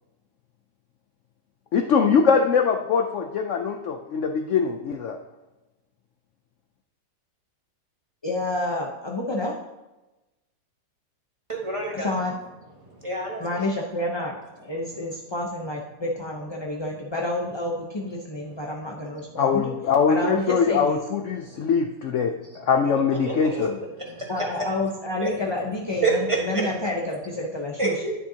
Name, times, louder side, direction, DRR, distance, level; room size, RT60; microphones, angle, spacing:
voice 1, 1.7-5.2 19.4-23.8, left 6 dB, 65° left, 5 dB, 0.8 m, -22 dB
voice 2, 8.2-9.5 11.9-12.4 13.4-19.7 20.1-21.0 24.3-28.0, left 1 dB, 35° left, -2 dB, 0.4 m, -29 dB
voice 3, 11.5-12.1 13.0-13.6 21.5-21.6 23.2-23.7 24.2-24.3 25.2-25.3 26.0-26.7 27.8-28.1, right 3 dB, 20° right, -1 dB, 1.5 m, -27 dB
10.0 x 9.7 x 2.8 m, 1.1 s
omnidirectional pair, 1.9 m